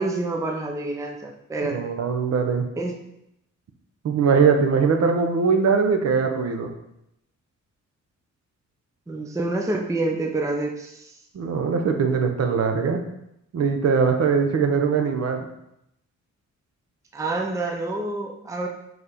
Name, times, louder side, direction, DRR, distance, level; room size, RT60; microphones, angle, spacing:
voice 1, 0.0-1.9 2.8-2.9 9.1-11.1 17.1-18.7, right 2 dB, 10° right, 1 dB, 0.5 m, -27 dB
voice 2, 1.6-2.7 4.0-6.7 11.3-13.0 13.5-15.5, right 5 dB, 55° right, 5 dB, 0.8 m, -21 dB
4.7 x 4.2 x 5.0 m, 0.81 s
wide cardioid pair, 170°, 30 cm